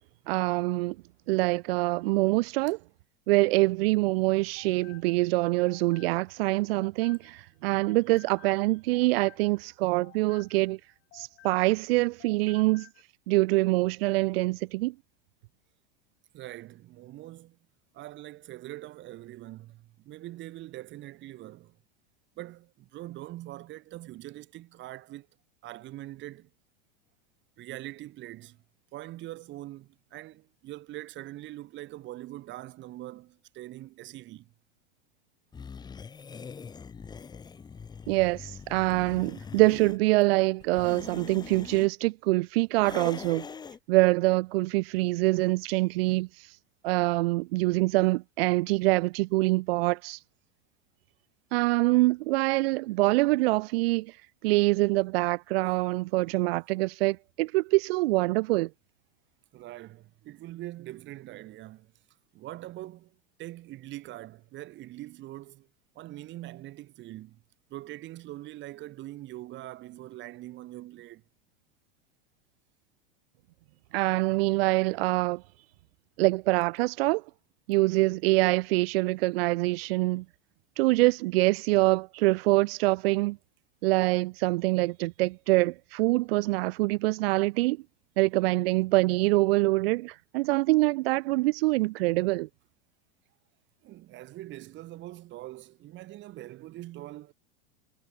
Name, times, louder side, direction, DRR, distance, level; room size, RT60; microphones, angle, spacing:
voice 1, 0.3-1.0 1.3-2.8 3.3-10.8 11.1-12.9 13.3-14.9 38.1-43.5 43.9-46.3 46.8-50.2 51.5-54.1 54.4-58.7 73.9-75.4 76.2-77.2 77.7-80.2 80.8-83.4 83.8-87.8 88.2-92.5, right 21 dB, 70° right, 0.5 m, -25 dB
sound 1, 4.3-7.6 7.8-11.9 12.2-13.0, left 19 dB, 45° left, 5.2 m, -56 dB
voice 2, 16.3-17.6 17.9-21.8 22.4-25.3 25.6-26.5 27.6-28.6 28.9-34.5 59.5-61.9 62.3-65.7 65.9-67.4 67.7-71.2 93.8-97.3, right 16 dB, 35° right, 3.1 m, -43 dB
sound 2, 35.5-40.0 40.6-41.9 42.8-43.8, left 6 dB, 15° left, 1.1 m, -42 dB
supercardioid pair, 140°, 31 cm